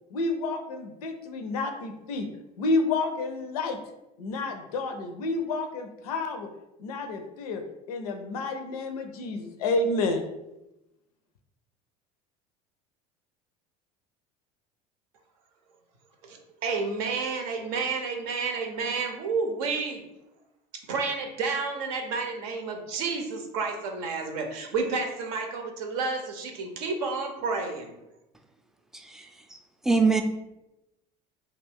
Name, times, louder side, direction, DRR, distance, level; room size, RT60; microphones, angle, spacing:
voice 1, 0.1-2.3 2.6-3.8 4.2-6.5 6.8-7.6 7.9-10.2, left 3 dB, 85° left, 6 dB, 0.4 m, -29 dB
voice 2, 16.3-20.0 20.9-27.9, right 4 dB, 75° right, 4 dB, 0.6 m, -30 dB
voice 3, 28.9-29.6 29.8-30.2, right 4 dB, ahead, 4 dB, 0.3 m, -24 dB
2.3 x 2.2 x 3.4 m, 0.93 s
hypercardioid pair, 80°, 19 cm